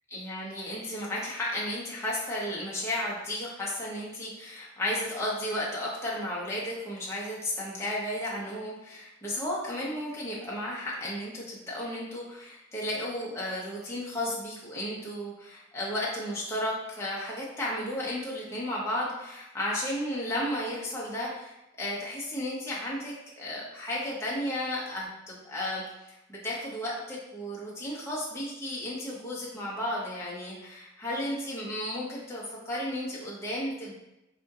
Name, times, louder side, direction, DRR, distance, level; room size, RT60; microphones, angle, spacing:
voice 1, 0.1-33.9, left 1 dB, 15° left, -6 dB, 0.8 m, -33 dB
4.2 x 2.7 x 2.4 m, 0.92 s
head